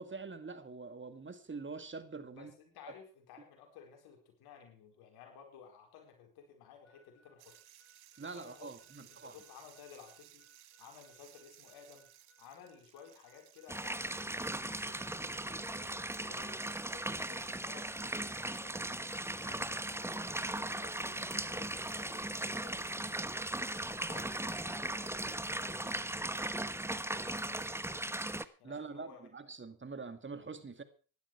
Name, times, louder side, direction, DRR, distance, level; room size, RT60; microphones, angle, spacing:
voice 1, 0.0-2.5 8.2-9.4 28.6-30.8, right 4 dB, 30° right, 2.2 m, -45 dB
voice 2, 2.3-7.6 8.3-10.4 10.8-23.3 23.8-26.5 27.1-28.3 28.6-29.2, left 7 dB, 85° left, 4.5 m, -56 dB
Harmonica, 6.8-14.4, left 1 dB, 40° left, 3.5 m, -69 dB
sound 1, 7.4-24.3, right 14 dB, 85° right, 1.5 m, -62 dB
sound 2, 13.7-28.4, right 1 dB, 5° right, 1.0 m, -38 dB
16.0 x 12.0 x 4.7 m
supercardioid pair, 60°, 37 cm